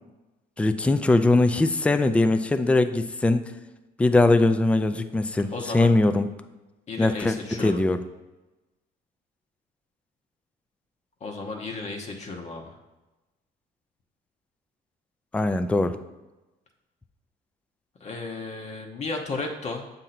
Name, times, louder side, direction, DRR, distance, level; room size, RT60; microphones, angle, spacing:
voice 1, 0.6-3.5 4.0-6.3 7.0-8.0 15.3-16.0, left 2 dB, 5° left, 10 dB, 0.3 m, -21 dB
voice 2, 5.5-5.9 6.9-7.8 11.2-12.8 18.0-19.8, left 3 dB, 40° left, 2 dB, 0.8 m, -34 dB
7.3 x 2.7 x 5.8 m, 1.1 s
cardioid pair, 110°, 17 cm